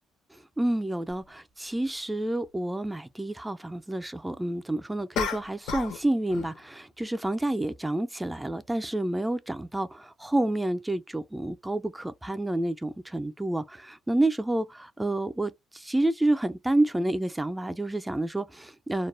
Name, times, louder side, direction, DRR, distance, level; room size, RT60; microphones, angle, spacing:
voice 1, 0.6-14.7 15.0-19.1, right 1 dB, 10° right, 0.3 m, -29 dB
sound 1, 1.1-1.2 5.1-6.0 6.3-6.6, left 6 dB, 90° left, 0.5 m, -32 dB
2.2 x 2.0 x 3.1 m
cardioid pair, 105°, 0 cm